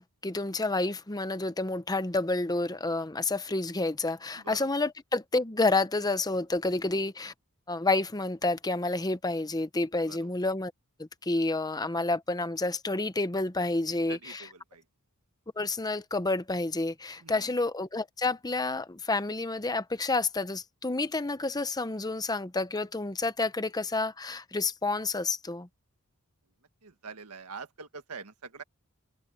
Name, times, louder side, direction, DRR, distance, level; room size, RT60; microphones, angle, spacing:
voice 1, 0.0-7.3 7.7-10.7 11.2-14.5 15.6-25.7, left 2 dB, 15° left, 0.8 m, -29 dB
voice 2, 4.4-4.7 10.1-10.3 13.9-14.8 17.2-17.5 26.8-28.6, right 5 dB, 85° right, 1.7 m, -45 dB
open air
head